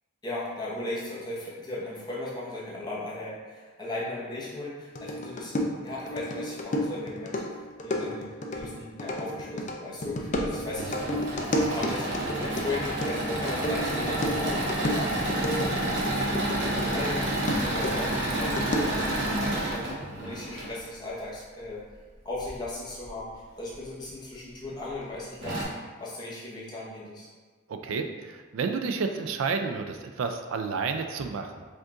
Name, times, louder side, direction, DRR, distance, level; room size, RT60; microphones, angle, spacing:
voice 1, 0.2-19.8 20.2-21.8 22.2-27.3, left 2 dB, 20° left, -7 dB, 0.9 m, -37 dB
sound 1, 5.0-17.1 17.5-19.1, left 1 dB, 35° left, 0.4 m, -31 dB
Engine / Mechanisms, 10.4-20.7 22.3-23.1 23.7-23.8 24.1-24.2 25.0-25.1 25.4-25.6, right 1 dB, 60° right, 0.9 m, -30 dB
voice 2, 27.7-31.7, right 5 dB, 80° right, 6 dB, 0.3 m, -31 dB
5.1 x 2.5 x 3.7 m, 1.4 s
head